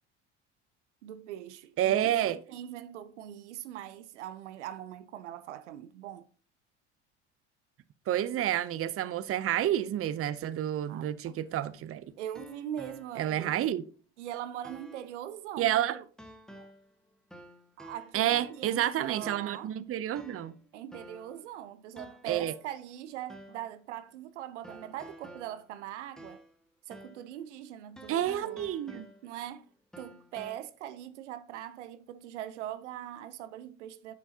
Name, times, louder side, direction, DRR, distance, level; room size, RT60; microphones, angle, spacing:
voice 1, 1.0-6.3 10.9-11.4 12.2-13.6 14.2-16.0 16.6-16.7 17.8-19.7 20.7-26.4 26.9-28.7 29.2-29.7 30.0-34.1, right 11 dB, 80° right, 0.7 m, -41 dB
voice 2, 1.8-2.4 8.1-12.1 13.2-13.8 15.6-16.0 18.1-20.6 22.3-22.5 28.1-29.1, right 12 dB, 40° right, 0.7 m, -29 dB
sound 1, 11.4-13.4 13.9-14.0 14.6-15.2 16.2-16.9 17.3-18.8 19.2-19.7 20.1-21.4 22.0-22.7 23.3-23.7 24.6-26.6 26.9-27.3 28.0-29.5 29.9-30.6, equal, ahead, 1.5 m, -51 dB
9.8 x 7.6 x 2.9 m
hypercardioid pair, 65°, 35 cm